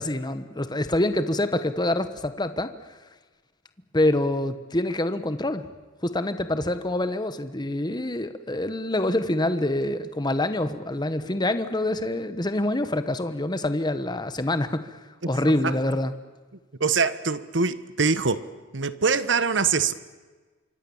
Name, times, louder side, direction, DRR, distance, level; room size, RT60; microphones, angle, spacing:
voice 1, 0.0-2.7 3.9-5.7 6.0-15.0 15.3-16.1, left 1 dB, 20° left, 11 dB, 1.2 m, -26 dB
voice 2, 16.8-18.4 18.7-19.9, right 5 dB, 70° right, 14 dB, 1.3 m, -23 dB
26.5 x 24.5 x 7.3 m, 1.3 s
head